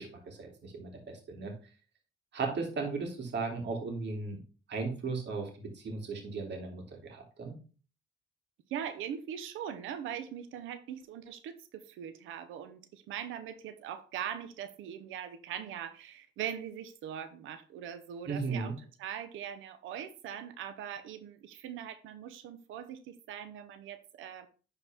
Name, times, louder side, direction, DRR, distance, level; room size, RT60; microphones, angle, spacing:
voice 1, 0.0-1.5 2.3-4.4 4.7-7.5 18.3-18.7, right 4 dB, 60° right, 2 dB, 2.8 m, -36 dB
voice 2, 8.7-18.7 19.0-24.5, right 9 dB, 90° right, 10 dB, 0.9 m, -41 dB
10.5 x 4.5 x 3.5 m, 0.37 s
cardioid pair, 90°, 20 cm